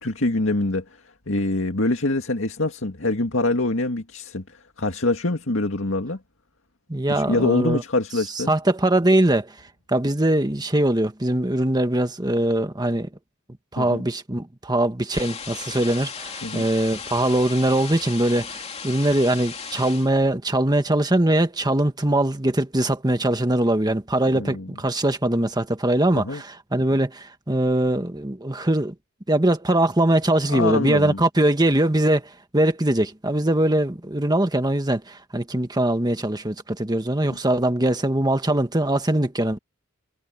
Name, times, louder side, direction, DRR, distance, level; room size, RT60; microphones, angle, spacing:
voice 1, 0.0-0.8 1.3-6.2 7.1-8.5 13.8-14.0 16.4-16.7 24.3-24.7 26.2-26.4 30.5-31.2, left 2 dB, 70° left, 2.2 m, -24 dB
voice 2, 6.9-7.8 8.5-9.6 9.9-13.1 13.7-28.9 29.3-39.6, right 1 dB, 20° right, 1.6 m, -22 dB
sound 1, 15.1-20.1, left 6 dB, 30° left, 2.9 m, -36 dB
head